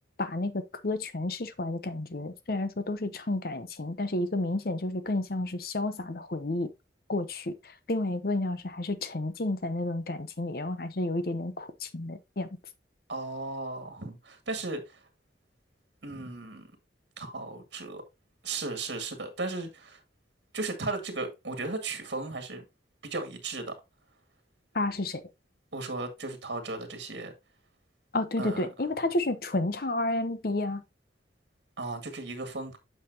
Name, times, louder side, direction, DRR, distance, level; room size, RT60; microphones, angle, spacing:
voice 1, 0.2-6.7 7.1-7.5 7.9-12.5 24.7-25.2 28.1-30.8, left 2 dB, 55° left, 0.8 m, -31 dB
voice 2, 13.1-15.0 16.0-16.7 17.2-18.0 18.4-20.0 20.5-22.6 23.0-23.7 25.7-27.3 28.4-28.7 31.8-32.8, right 3 dB, 75° right, 1.9 m, -35 dB
8.8 x 5.7 x 2.8 m
head